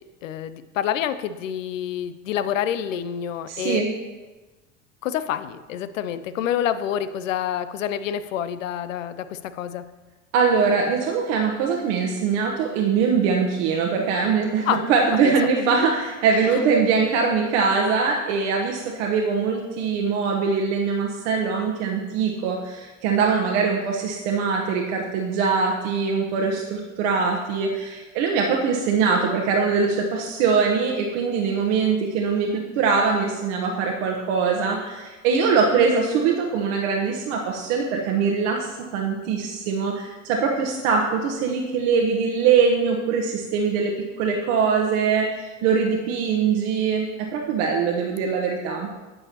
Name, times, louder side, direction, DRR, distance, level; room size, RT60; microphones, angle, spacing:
voice 1, 0.2-3.8 5.0-9.8 14.6-14.8 15.2-15.9 16.4-16.6, left 10 dB, 85° left, 13 dB, 0.6 m, -28 dB
voice 2, 3.5-3.9 10.3-43.9 44.2-47.1 47.3-48.9, right 5 dB, 65° right, 0 dB, 1.0 m, -22 dB
10.5 x 6.9 x 2.9 m, 1.2 s
hypercardioid pair, 75°, 38 cm